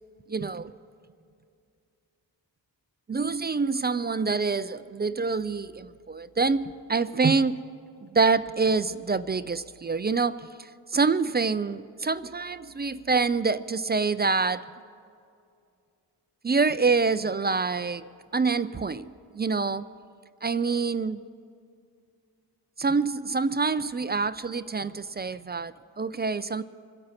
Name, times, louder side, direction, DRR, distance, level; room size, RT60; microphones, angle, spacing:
voice 1, 0.3-0.7 3.1-7.7 8.1-10.4 10.9-14.6 16.4-18.0 18.3-19.9 20.4-21.2 22.8-26.6, right 4 dB, 25° right, 14 dB, 0.4 m, -26 dB
25.5 x 8.6 x 5.8 m, 2.5 s
cardioid pair, 70°, 43 cm